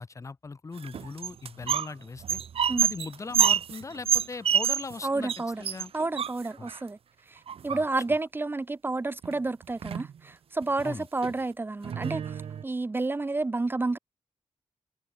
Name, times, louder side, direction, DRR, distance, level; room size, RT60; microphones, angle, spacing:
voice 1, 0.0-2.4 2.8-5.3 5.6-5.9 6.6-6.7 7.7-7.8 10.8-11.1, left 4 dB, 30° left, 2.6 m, -39 dB
sound 1, 0.8-1.9 2.2-5.0 5.3-5.4 5.6-6.8 7.5-8.1 9.2-9.3 9.6-10.1 10.6-10.8 11.2-11.3 11.8-12.6, right 8 dB, 60° right, 0.8 m, -27 dB
voice 2, 5.0-5.6 5.9-7.0 7.3-14.0, right 3 dB, 20° right, 1.0 m, -30 dB
wide cardioid pair, 170°, 11 cm